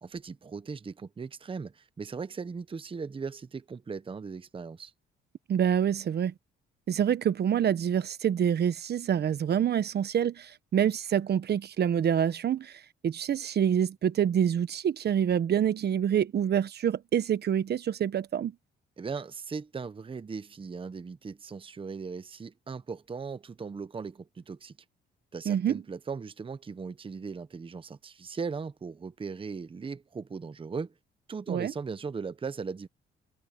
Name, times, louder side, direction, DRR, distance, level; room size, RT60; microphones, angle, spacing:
voice 1, 0.0-4.9 19.0-24.7 25.3-30.9 31.3-32.9, right 5 dB, 25° right, 0.8 m, -38 dB
voice 2, 5.5-6.3 6.9-18.5 25.5-25.8 31.5-31.7, right 9 dB, 55° right, 1.0 m, -26 dB
cardioid pair, 90°, 20 cm